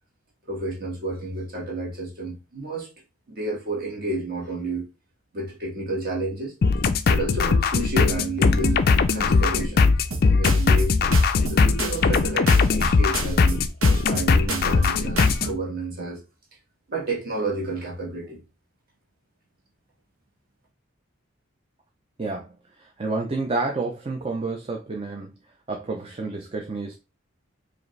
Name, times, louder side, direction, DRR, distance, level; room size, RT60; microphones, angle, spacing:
voice 1, 0.5-2.9 3.3-4.9 5.3-6.5 7.1-8.8 9.1-9.9 10.2-11.0 11.5-16.2 16.9-18.4, right 2 dB, 45° right, 1.4 m, -30 dB
sound 1, 6.6-15.5, left 4 dB, 45° left, 0.3 m, -20 dB
sound 2, 10.1-10.9 11.1-12.2 12.5-13.6 13.8-14.9 15.2-15.5, right 3 dB, 85° right, 0.9 m, -32 dB
voice 2, 22.2-25.3 25.7-26.9, right 3 dB, 30° right, 0.5 m, -29 dB
4.9 x 2.5 x 3.1 m
head